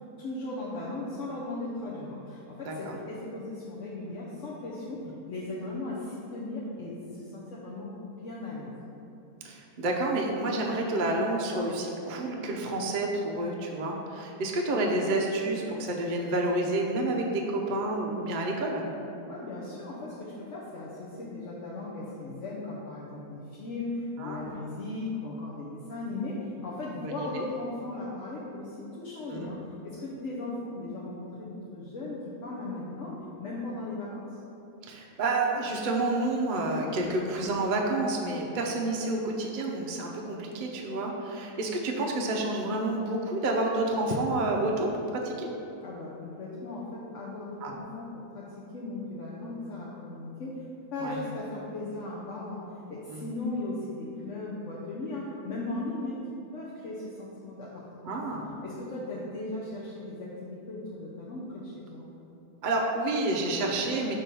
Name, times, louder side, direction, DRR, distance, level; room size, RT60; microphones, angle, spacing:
voice 1, 0.2-5.0 5.3-7.9 8.2-8.7 19.3-29.6 29.8-34.3 45.8-48.5 48.7-52.6 52.9-56.2 56.5-58.2 58.6-62.0, left 2 dB, 55° left, -6 dB, 1.0 m, -37 dB
voice 2, 9.4-18.8 24.2-24.6 27.0-27.4 29.3-29.5 34.8-45.5 47.6-47.7 51.0-51.2 53.1-53.2 58.0-58.5 62.6-64.1, right 2 dB, 50° right, -1 dB, 0.6 m, -29 dB
6.0 x 3.7 x 5.3 m, 2.9 s
omnidirectional pair, 1.7 m